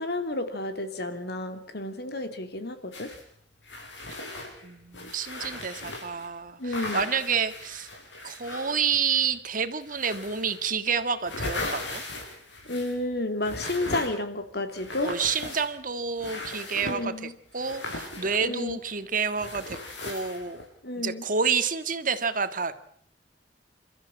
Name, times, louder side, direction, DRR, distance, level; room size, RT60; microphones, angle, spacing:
voice 1, 0.0-3.1 6.6-7.1 12.7-15.1 16.8-17.3 18.4-18.8 20.8-21.2, left 2 dB, 60° left, 8 dB, 2.9 m, -31 dB
sound 1, 2.9-3.2 3.6-6.3 6.7-9.4 9.8-10.7 11.0-13.1 13.4-14.3 14.7-15.9 16.2-17.0 17.5-18.9 19.3-20.7, left 2 dB, 80° left, 6.7 m, -38 dB
voice 2, 4.6-7.9 8.2-12.0 15.0-19.8 20.0-20.6 21.0-22.7, right 6 dB, 45° right, 10 dB, 1.7 m, -29 dB
29.0 x 13.5 x 8.8 m, 0.65 s
head